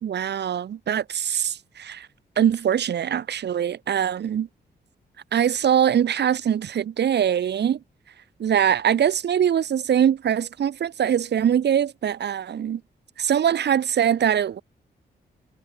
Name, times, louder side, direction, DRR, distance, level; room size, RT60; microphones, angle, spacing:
voice 1, 0.0-2.1 2.4-4.5 5.3-7.8 8.4-12.8 13.2-14.6, right 9 dB, 80° right, 3.9 m, -22 dB
wide cardioid pair, 125°, 17 cm